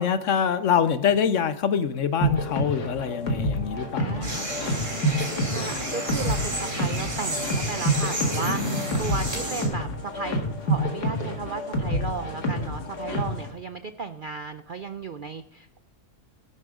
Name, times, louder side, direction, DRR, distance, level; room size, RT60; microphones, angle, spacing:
voice 1, 0.0-4.5, left 7 dB, 60° left, 13 dB, 1.0 m, -25 dB
sound 1, 2.2-13.5, equal, 85° left, 2.3 m, -28 dB
voice 2, 4.0-4.4 5.5-15.8, right 4 dB, 80° right, 10 dB, 0.4 m, -35 dB
sound 2, 4.2-9.6, right 1 dB, 30° right, 3.7 m, -31 dB
14.0 x 11.0 x 3.7 m, 0.74 s
omnidirectional pair, 1.7 m